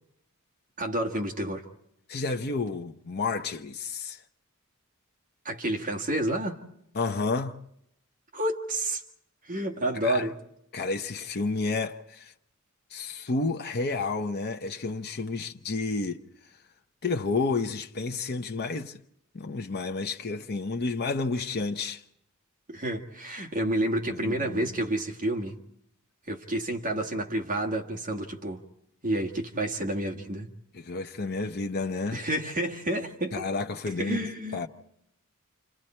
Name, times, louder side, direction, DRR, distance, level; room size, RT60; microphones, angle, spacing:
voice 1, 0.8-1.7 5.5-6.6 8.3-9.0 9.4-10.4 22.7-25.6 26.3-28.6 29.0-30.5 32.1-33.4 34.0-34.7, right 1 dB, 40° right, 1.8 m, -29 dB
voice 2, 2.1-4.2 6.9-7.6 10.0-10.3 10.7-12.3 12.9-16.2 17.0-19.0 19.3-22.0 24.1-24.7 30.7-32.2 33.3-34.7, left 3 dB, 50° left, 0.8 m, -31 dB
29.0 x 27.5 x 4.4 m
head